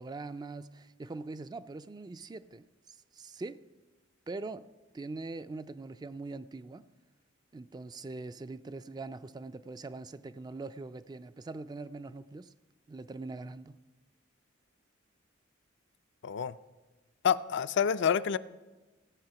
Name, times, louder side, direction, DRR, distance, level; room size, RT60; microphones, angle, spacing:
voice 1, 0.0-3.7 4.3-6.9 7.5-12.5 12.9-13.8, right 3 dB, 20° right, 0.3 m, -42 dB
voice 2, 16.2-16.5 17.2-18.4, left 7 dB, 65° left, 0.4 m, -27 dB
15.5 x 8.1 x 5.8 m
head